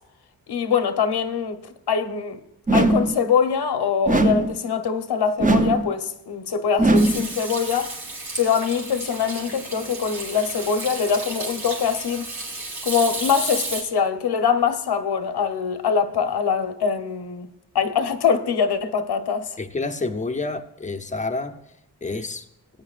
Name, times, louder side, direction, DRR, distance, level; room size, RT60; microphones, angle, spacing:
voice 1, 0.5-1.6 1.9-2.4 2.7-7.9 8.4-12.3 12.8-17.5 17.7-19.5, left 6 dB, 80° left, 1.1 m, -23 dB
sound 1, 2.7-3.2 4.1-4.6 5.4-5.9 6.8-7.3, right 2 dB, 20° right, 0.7 m, -19 dB
Hands / Sink (filling or washing), 6.9-13.8, right 2 dB, 65° right, 3.8 m, -33 dB
voice 2, 19.6-21.6 22.0-22.4, left 3 dB, 20° left, 0.7 m, -28 dB
18.0 x 9.5 x 2.5 m
wide cardioid pair, 135°, 39 cm